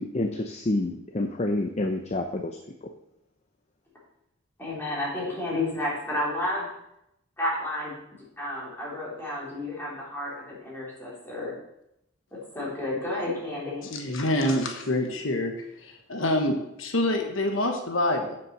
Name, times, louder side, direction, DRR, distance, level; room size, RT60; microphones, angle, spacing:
voice 1, 0.0-2.6, left 2 dB, 35° left, 5 dB, 0.6 m, -28 dB
voice 2, 4.6-6.7 7.4-11.5 12.3-13.9, left 1 dB, 10° left, -6 dB, 3.3 m, -31 dB
voice 3, 13.8-15.5 15.8-18.4, left 1 dB, 80° left, 4 dB, 1.3 m, -26 dB
7.7 x 6.0 x 6.6 m, 0.82 s
head